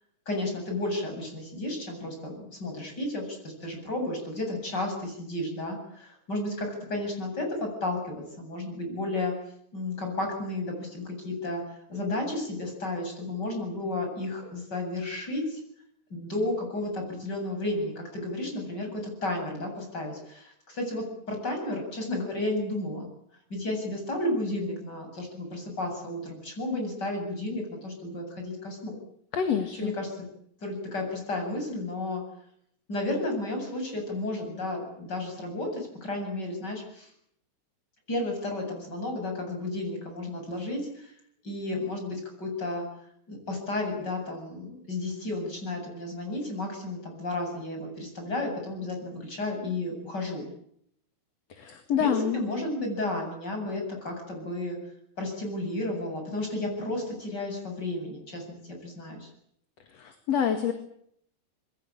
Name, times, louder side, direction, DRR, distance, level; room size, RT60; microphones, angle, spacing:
voice 1, 0.3-9.4 9.7-11.6 11.9-15.6 16.1-23.1 23.5-29.0 29.7-30.2 30.6-32.2 32.9-37.1 38.1-41.1 41.4-42.9 43.3-50.5 52.0-54.8 55.2-59.3, left 2 dB, 35° left, 3 dB, 8.5 m, -32 dB
voice 2, 29.3-29.9 51.6-52.4 59.9-60.7, left 8 dB, 60° left, 7 dB, 3.1 m, -27 dB
26.0 x 22.0 x 8.8 m, 0.71 s
omnidirectional pair, 3.3 m